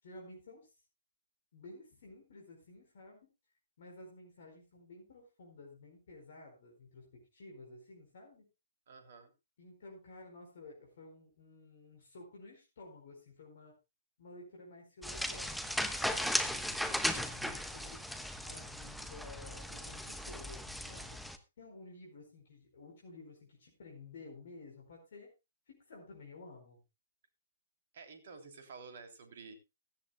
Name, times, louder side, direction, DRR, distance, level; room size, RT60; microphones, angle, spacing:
voice 1, 0.0-0.7 1.5-3.3 3.8-8.4 9.6-13.7 14.2-18.1 18.4-21.2 21.6-25.3 25.7-26.8, left 2 dB, 55° left, 0 dB, 4.7 m, -53 dB
voice 2, 8.9-9.3 27.9-29.5, right 4 dB, 55° right, 6 dB, 3.3 m, -51 dB
sound 1, 15.0-21.4, equal, ahead, 1.1 m, -37 dB
16.5 x 14.0 x 2.3 m, 0.27 s
figure-of-eight pair, 125°, 0 cm